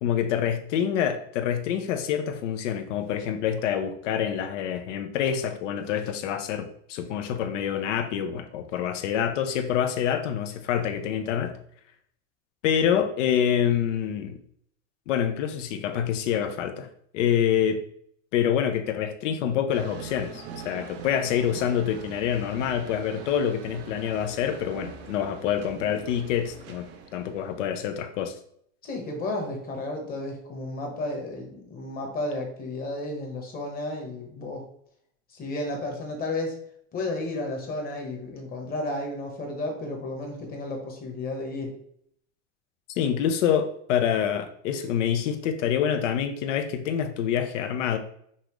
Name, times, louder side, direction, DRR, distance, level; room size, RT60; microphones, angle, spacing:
voice 1, 0.0-11.5 12.6-14.4 15.1-16.9 17.1-17.8 18.3-28.3 42.9-48.0, left 9 dB, 80° left, 8 dB, 0.8 m, -26 dB
sound 1, 19.7-28.0, right 6 dB, 40° right, 0.7 m, -43 dB
voice 2, 28.8-34.6 35.3-36.6 36.9-41.7, left 2 dB, 25° left, 1 dB, 1.1 m, -32 dB
5.5 x 2.5 x 3.2 m, 0.66 s
supercardioid pair, 140°, 36 cm